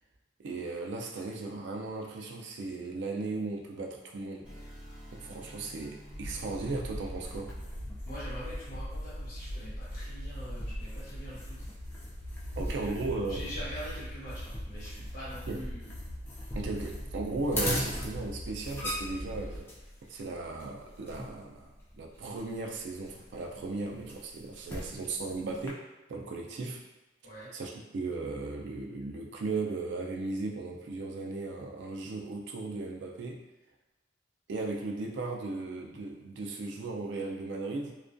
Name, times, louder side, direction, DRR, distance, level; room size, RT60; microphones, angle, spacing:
voice 1, 0.4-4.5 5.1-7.6 12.6-13.5 15.5-15.6 16.6-19.7 20.0-26.8 27.5-33.5 34.5-38.0, right 3 dB, 65° right, 0 dB, 0.3 m, -36 dB
sound 1, 4.4-8.7, equal, 5° right, 0.8 m, -51 dB
sound 2, 6.1-19.6, equal, 75° left, 0.5 m, -41 dB
sound 3, 7.2-25.7, left 1 dB, 10° left, 0.3 m, -41 dB
voice 2, 8.1-11.6 12.6-13.0 13.3-15.9 27.2-27.5, equal, 50° left, -9 dB, 1.1 m, -44 dB
2.3 x 2.2 x 2.4 m, 1.1 s
head